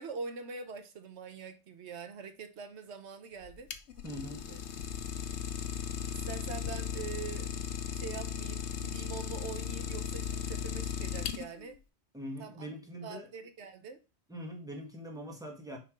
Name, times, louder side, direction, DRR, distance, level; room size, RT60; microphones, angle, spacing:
voice 1, 0.0-3.7 4.5-4.6 6.1-11.8 12.4-12.7 13.0-14.0, right 5 dB, 85° right, 1.1 m, -44 dB
Idling, 3.4-11.8, left 7 dB, 85° left, 0.9 m, -37 dB
voice 2, 4.0-4.5 12.1-13.3 14.3-15.8, equal, 5° right, 1.6 m, -42 dB
6.0 x 3.4 x 5.1 m
omnidirectional pair, 1.1 m